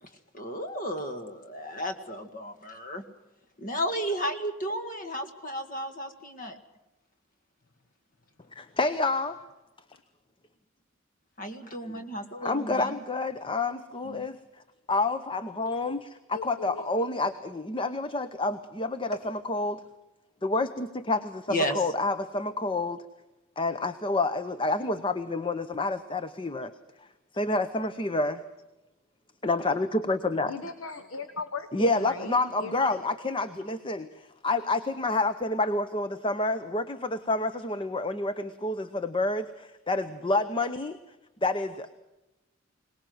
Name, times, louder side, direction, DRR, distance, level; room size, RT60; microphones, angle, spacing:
voice 1, 0.3-3.0 3.6-6.6 11.4-13.0 21.5-21.8, equal, 40° left, 7 dB, 2.0 m, -33 dB
voice 2, 8.6-9.4 11.9-12.0 12.4-14.4 14.9-19.8 20.4-23.0 23.6-26.7 27.3-28.4 29.4-30.5 31.7-41.0 41.4-42.0, left 2 dB, 25° left, 11 dB, 0.8 m, -28 dB
voice 3, 16.3-16.9 30.5-33.0, left 4 dB, 85° left, 9 dB, 1.3 m, -38 dB
22.5 x 19.5 x 7.9 m, 0.98 s
head